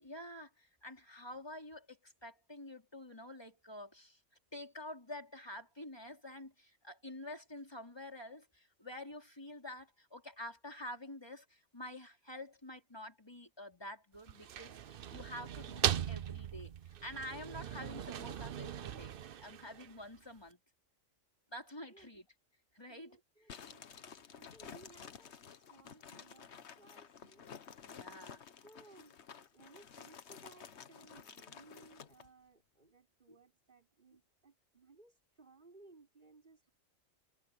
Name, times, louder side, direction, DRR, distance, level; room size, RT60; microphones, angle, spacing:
voice 1, 0.0-4.2 4.5-16.7 17.0-20.6 21.5-22.3 22.7-23.2 27.9-28.4 33.3-33.4, left 1 dB, 20° left, 4.6 m, -48 dB
sound 1, 14.1-20.2, right 9 dB, 55° right, 0.7 m, -39 dB
voice 2, 22.9-23.9 24.1-27.5 28.6-36.7, right 3 dB, 35° right, 5.5 m, -61 dB
sound 2, 23.5-32.3, left 7 dB, 60° left, 1.3 m, -52 dB
omnidirectional pair, 1.4 m